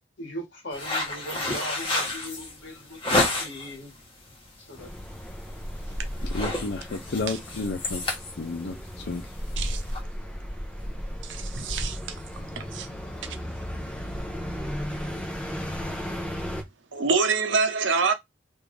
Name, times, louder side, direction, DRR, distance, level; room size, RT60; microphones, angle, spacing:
voice 1, 0.2-3.9 4.6-4.9, equal, 80° left, 1.9 m, -39 dB
sound 1, 0.7-3.7 4.2-4.5 4.9-5.1 5.4-5.8 6.1-10.0, left 2 dB, 30° left, 1.0 m, -29 dB
sound 2, 4.8-16.6, equal, 5° left, 0.6 m, -35 dB
voice 2, 6.3-8.1 8.4-9.3, left 3 dB, 65° left, 0.5 m, -32 dB
voice 3, 11.2-12.2 12.6-12.9 16.9-18.1, right 4 dB, 85° right, 0.8 m, -26 dB
3.5 x 2.5 x 3.2 m
head